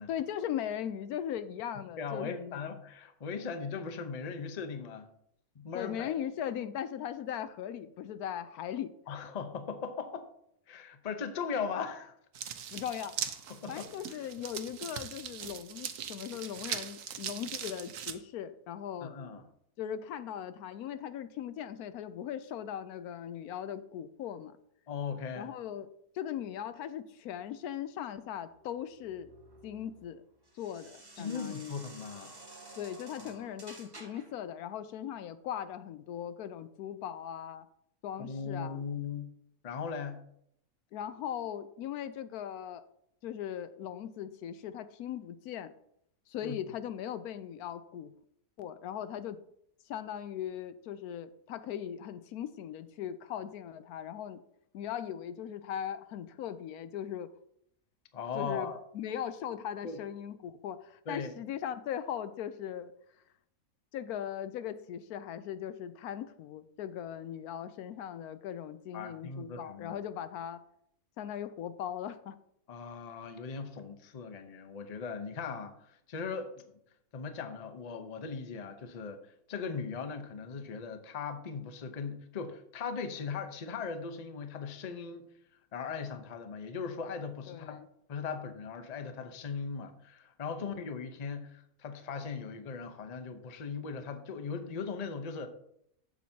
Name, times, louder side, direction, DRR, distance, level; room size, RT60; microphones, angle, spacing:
voice 1, 0.1-2.6 5.7-8.9 12.7-19.1 19.8-24.6 25.3-25.9 26.1-29.3 29.6-30.2 30.5-31.7 32.8-37.7 38.0-38.8 40.9-42.8 43.2-45.7 46.3-48.1 48.6-49.4 49.9-54.4 54.7-57.3 58.3-62.9 63.9-70.6 71.2-72.4 87.5-87.9 90.6-90.9, left 10 dB, 80° left, 13 dB, 1.0 m, -39 dB
voice 2, 2.0-5.1 5.5-6.1 9.1-10.3 10.7-12.1 13.5-13.9 19.0-19.4 24.9-25.5 31.2-32.3 33.2-33.3 38.2-39.3 39.6-40.2 46.4-46.6 58.1-58.8 59.8-60.0 61.1-61.3 68.9-70.0 72.7-76.6 77.1-79.2 79.5-85.2 85.7-87.8 88.1-95.5, left 5 dB, 35° left, 8 dB, 0.7 m, -39 dB
sound 1, 12.3-18.1, right 8 dB, 65° right, 1.0 m, -40 dB
sound 2, 28.6-34.4, right 2 dB, 15° right, 1.0 m, -52 dB
12.0 x 7.3 x 2.8 m, 0.73 s
omnidirectional pair, 1.6 m